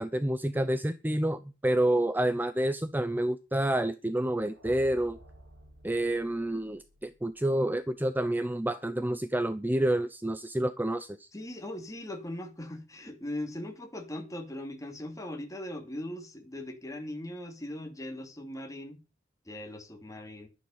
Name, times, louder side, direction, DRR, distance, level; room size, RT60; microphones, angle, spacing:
voice 1, 0.0-5.2 5.8-11.3, right 1 dB, 10° right, 0.6 m, -28 dB
sound 1, 4.3-8.3, right 1 dB, 70° right, 6.7 m, -54 dB
voice 2, 11.3-19.0 19.5-20.5, left 1 dB, 15° left, 2.9 m, -39 dB
12.0 x 10.5 x 5.6 m
head